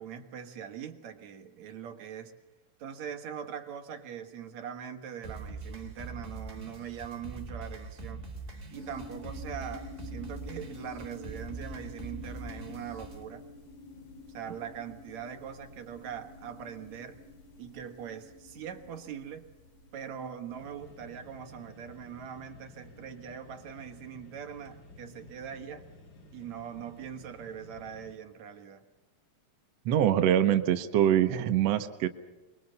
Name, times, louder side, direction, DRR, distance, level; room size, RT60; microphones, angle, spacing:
voice 1, 0.0-2.3 2.8-8.2 8.7-13.5 14.3-17.2 17.6-19.5 19.9-25.8 26.3-28.8, right 8 dB, 55° right, 5 dB, 2.6 m, -42 dB
sound 1, 5.2-13.2, right 3 dB, 20° right, 2.2 m, -43 dB
sound 2, 8.7-22.1, left 3 dB, 70° left, 5.3 m, -49 dB
sound 3, 20.5-28.2, left 2 dB, 35° left, 1.8 m, -53 dB
voice 2, 29.8-32.1, right 10 dB, 80° right, 8 dB, 1.4 m, -24 dB
24.0 x 22.5 x 6.8 m, 1.1 s
omnidirectional pair, 4.2 m